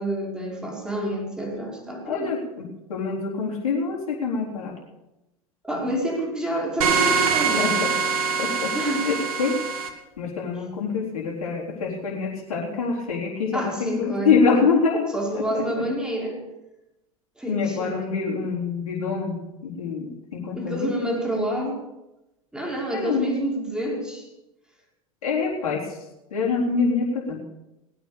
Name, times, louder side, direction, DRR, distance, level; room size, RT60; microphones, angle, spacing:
voice 1, 0.0-2.3 5.6-7.8 8.7-9.1 13.5-14.6 15.1-16.4 17.4-18.0 20.5-21.8 22.5-24.3, right 1 dB, 5° right, -1 dB, 5.1 m, -28 dB
voice 2, 2.0-4.7 7.6-7.9 8.4-8.7 9.0-9.6 10.2-15.1 15.5-15.6 17.5-21.1 22.9-23.3 25.2-26.0 26.3-27.4, left 5 dB, 75° left, -4 dB, 4.1 m, -25 dB
sound 1, 6.8-9.9, right 5 dB, 70° right, 1.9 m, -23 dB
19.5 x 9.4 x 7.0 m, 0.95 s
hypercardioid pair, 85°, 18 cm